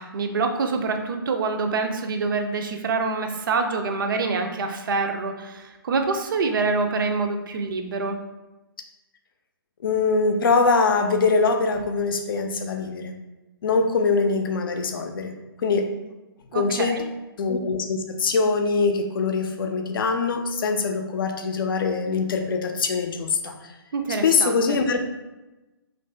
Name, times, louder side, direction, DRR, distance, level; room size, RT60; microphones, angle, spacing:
voice 1, 0.0-8.2 16.5-17.0 23.9-24.8, right 4 dB, 60° right, 5 dB, 0.5 m, -26 dB
voice 2, 9.8-13.1 13.6-15.3 15.6-15.9 16.5-17.0 17.4-23.5 24.2-25.1, left 4 dB, 65° left, 5 dB, 0.5 m, -23 dB
2.8 x 2.6 x 3.3 m, 1.1 s
hypercardioid pair, 140°, 13 cm